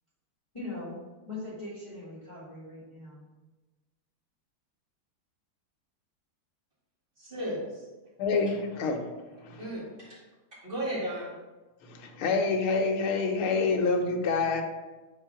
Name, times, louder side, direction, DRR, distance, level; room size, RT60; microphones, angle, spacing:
voice 1, 0.5-3.2, left 2 dB, 15° left, -8 dB, 1.8 m, -41 dB
voice 2, 7.2-7.9 9.6-10.2 10.6-11.3, equal, 25° right, -8 dB, 2.4 m, -35 dB
voice 3, 8.2-9.1 9.4-9.6 11.8-14.6, left 4 dB, 90° left, 4 dB, 1.7 m, -27 dB
4.7 x 4.4 x 5.7 m, 1.2 s
omnidirectional pair, 2.2 m